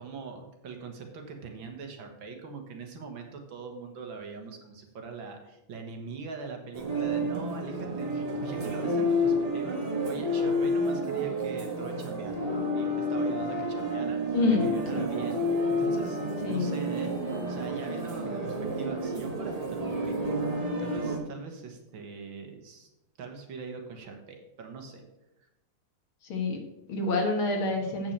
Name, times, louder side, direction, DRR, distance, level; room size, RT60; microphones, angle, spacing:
voice 1, 0.0-15.4 15.7-16.2 16.5-20.2 20.8-22.9 23.2-25.0, right 4 dB, 65° right, 3 dB, 2.1 m, -41 dB
sound 1, 6.7-21.2, equal, 20° right, 1.5 m, -30 dB
voice 2, 14.3-15.0 16.4-16.7 26.2-28.1, left 3 dB, 75° left, 3 dB, 2.5 m, -28 dB
8.6 x 6.1 x 6.7 m, 0.94 s
omnidirectional pair, 2.3 m